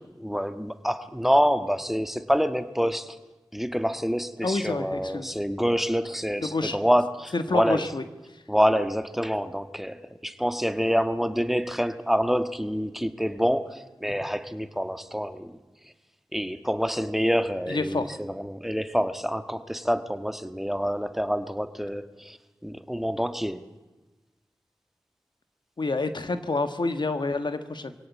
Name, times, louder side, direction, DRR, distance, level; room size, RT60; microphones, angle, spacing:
voice 1, 0.2-3.2 3.5-7.9 8.5-15.6 16.3-23.6, equal, 5° right, 10 dB, 1.5 m, -27 dB
voice 2, 4.4-5.3 6.4-6.8 7.3-8.0 17.7-18.2 25.8-27.9, left 3 dB, 65° left, 9 dB, 1.5 m, -28 dB
22.0 x 17.0 x 8.4 m, 1.1 s
cardioid pair, 45°, 8 cm